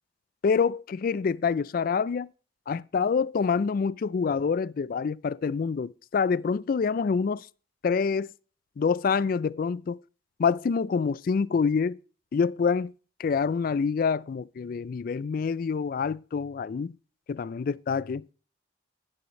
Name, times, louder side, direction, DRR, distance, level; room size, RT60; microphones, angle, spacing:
voice 1, 0.4-2.3 2.7-7.5 7.8-8.3 8.8-10.0 10.4-12.0 12.3-12.9 13.2-17.0 17.3-18.3, left 5 dB, 50° left, 0.3 m, -26 dB
9.6 x 9.6 x 3.0 m
head